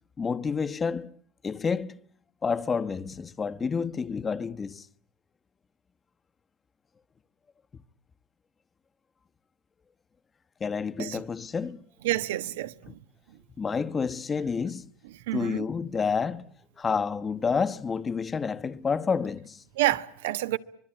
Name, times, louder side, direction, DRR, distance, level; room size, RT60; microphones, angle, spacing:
voice 1, 0.2-1.1 1.4-2.0 2.4-4.9 7.7-7.8 10.6-11.8 13.6-14.9 15.3-16.5 16.8-19.6, left 5 dB, 25° left, 1.1 m, -29 dB
voice 2, 12.0-13.0 15.3-15.6 19.8-20.6, right 15 dB, 85° right, 1.3 m, -28 dB
25.0 x 22.5 x 9.0 m
supercardioid pair, 100°, 0 cm